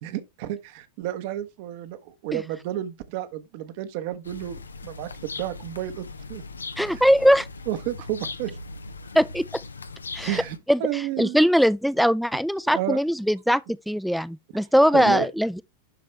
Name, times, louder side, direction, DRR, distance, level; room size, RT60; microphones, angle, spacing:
voice 1, 0.0-6.4 6.9-7.0 7.7-8.6 10.2-11.4 12.7-13.0 14.9-15.3, right 13 dB, 50° right, 1.0 m, -31 dB
sound 1, 4.2-10.6, left 3 dB, 75° left, 0.7 m, -39 dB
voice 2, 6.8-7.5 9.1-9.5 10.1-10.4 10.7-15.6, equal, ahead, 0.5 m, -21 dB
11.0 x 4.2 x 3.2 m
figure-of-eight pair, 90°, 0 cm